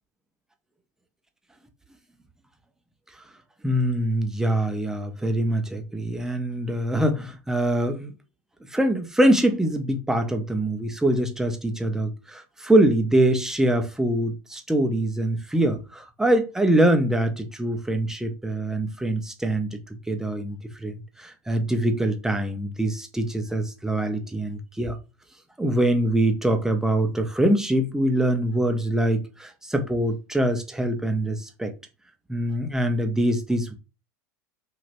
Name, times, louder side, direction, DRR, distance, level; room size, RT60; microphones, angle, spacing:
voice 1, 3.6-8.1 8.7-19.8 20.1-25.0 25.6-31.7 32.3-33.7, right 1 dB, 5° right, 0.7 m, -24 dB
3.1 x 2.8 x 2.5 m
hypercardioid pair, 90°, 9 cm